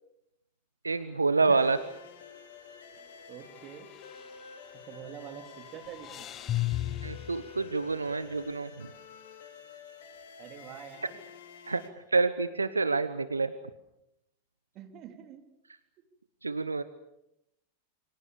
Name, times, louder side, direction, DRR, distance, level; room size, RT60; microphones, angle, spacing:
voice 1, 0.8-1.8 7.0-8.9 11.7-11.8 12.1-13.5 16.4-16.8, right 3 dB, 80° right, 13 dB, 1.0 m, -27 dB
sound 1, 0.9-1.3 1.6-1.7 3.5-5.0 5.3-8.4, left 14 dB, 30° left, 1.0 m, -37 dB
voice 2, 1.4-1.8 3.3-3.9 4.8-6.3 10.4-11.2 13.1-13.3 14.7-15.5, right 9 dB, 35° right, 6 dB, 3.6 m, -46 dB
sound 2, 1.6-11.9, left 6 dB, 60° left, 3.6 m, -50 dB
29.0 x 25.0 x 7.1 m, 0.84 s
figure-of-eight pair, 90°, 0 cm